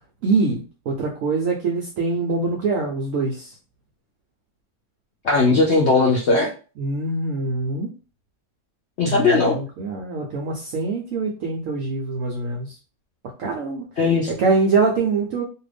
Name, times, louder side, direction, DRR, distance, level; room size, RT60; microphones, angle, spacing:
voice 1, 0.2-3.6 6.8-7.9 9.1-12.8 13.4-13.9 14.3-15.4, right 3 dB, 65° right, -1 dB, 0.9 m, -24 dB
voice 2, 5.2-6.5 9.0-9.6 14.0-14.3, left 3 dB, 60° left, -3 dB, 0.7 m, -18 dB
2.7 x 2.4 x 3.3 m, 0.34 s
omnidirectional pair, 1.7 m